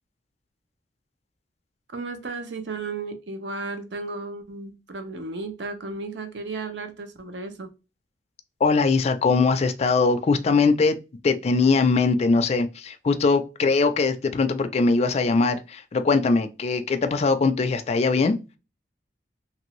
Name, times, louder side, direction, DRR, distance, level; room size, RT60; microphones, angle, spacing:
voice 1, 1.9-7.7, right 3 dB, 70° right, 0.6 m, -34 dB
voice 2, 8.6-11.0 11.2-18.4, left 4 dB, 35° left, 0.3 m, -21 dB
2.9 x 2.5 x 3.0 m
head